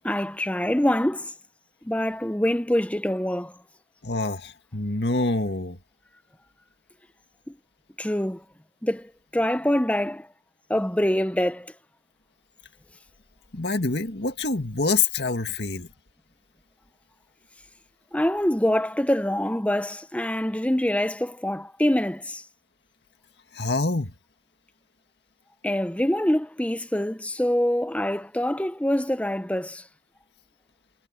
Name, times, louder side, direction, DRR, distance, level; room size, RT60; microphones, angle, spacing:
voice 1, 0.0-1.3 1.8-3.6 7.5-7.6 8.0-8.4 8.8-10.3 10.7-11.7 18.1-22.4 25.6-29.8, left 1 dB, 10° left, 0.7 m, -25 dB
voice 2, 4.0-5.8 13.5-15.9 23.5-24.1, left 3 dB, 70° left, 2.1 m, -26 dB
head